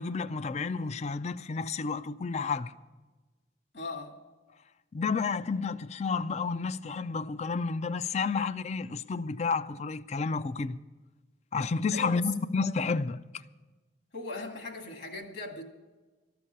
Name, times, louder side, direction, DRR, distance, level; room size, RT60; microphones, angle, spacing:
voice 1, 0.0-2.7 4.9-10.8 11.5-13.2, left 4 dB, 35° left, 0.4 m, -31 dB
voice 2, 3.7-4.2 11.9-12.1 14.1-15.6, left 2 dB, 60° left, 2.0 m, -39 dB
13.0 x 6.9 x 10.0 m
head